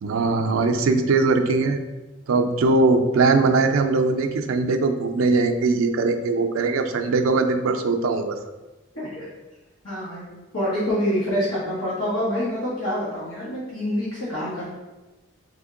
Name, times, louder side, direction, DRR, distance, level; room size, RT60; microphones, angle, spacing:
voice 1, 0.0-1.8 2.3-8.4, right 3 dB, 85° right, 6 dB, 0.4 m, -20 dB
voice 2, 8.9-9.3 9.8-14.7, equal, 85° left, -9 dB, 1.2 m, -26 dB
3.5 x 3.5 x 3.6 m, 1.1 s
head